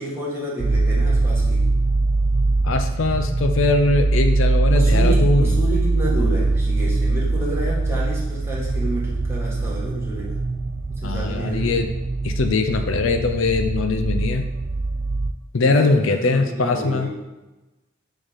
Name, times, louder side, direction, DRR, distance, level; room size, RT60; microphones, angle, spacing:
voice 1, 0.0-1.6 4.7-10.4 10.9-11.7 15.6-17.1, right 1 dB, 10° right, -6 dB, 1.8 m, -30 dB
sound 1, 0.6-15.3, right 2 dB, 40° right, 0.4 m, -22 dB
voice 2, 2.6-5.6 11.0-11.9 12.2-14.5 15.5-17.1, left 3 dB, 65° left, 7 dB, 0.5 m, -21 dB
7.0 x 3.7 x 5.3 m, 1.1 s
head